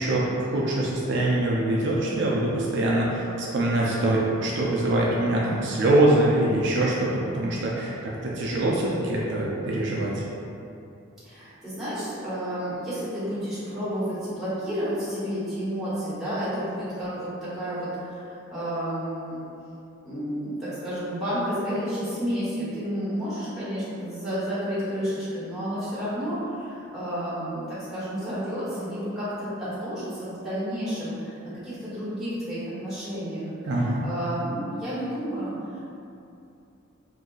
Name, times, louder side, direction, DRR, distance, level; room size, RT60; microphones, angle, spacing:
voice 1, 0.0-10.2 33.7-34.0, right 1 dB, 60° right, -4 dB, 0.4 m, -24 dB
voice 2, 11.2-19.4 20.0-35.8, equal, ahead, -14 dB, 1.2 m, -31 dB
2.7 x 2.3 x 3.8 m, 2.7 s
head